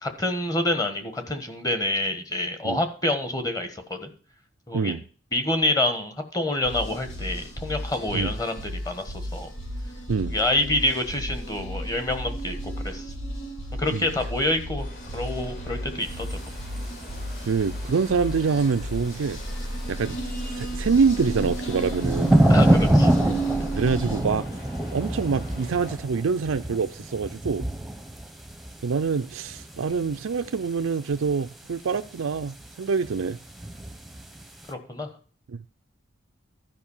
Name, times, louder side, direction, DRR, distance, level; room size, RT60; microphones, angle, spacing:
voice 1, 0.0-4.1 4.7-5.0 5.3-9.5 10.3-13.0 13.8-14.9 15.1-16.4 22.5-23.1 34.7-35.1, left 1 dB, 20° left, 1.3 m, -27 dB
sound 1, 6.6-24.2, right 1 dB, 75° left, 4.5 m, -33 dB
sound 2, 14.8-26.0, left 1 dB, 45° left, 3.4 m, -44 dB
sound 3, 16.1-17.4 17.8-17.9 18.6-19.9 20.3-34.7, right 1 dB, ahead, 0.9 m, -27 dB
voice 2, 17.5-19.4 19.9-20.2 20.6-22.4 23.7-24.5 24.9-27.7 28.8-33.4 35.5-35.6, right 5 dB, 85° right, 0.5 m, -25 dB
13.0 x 5.3 x 7.1 m
head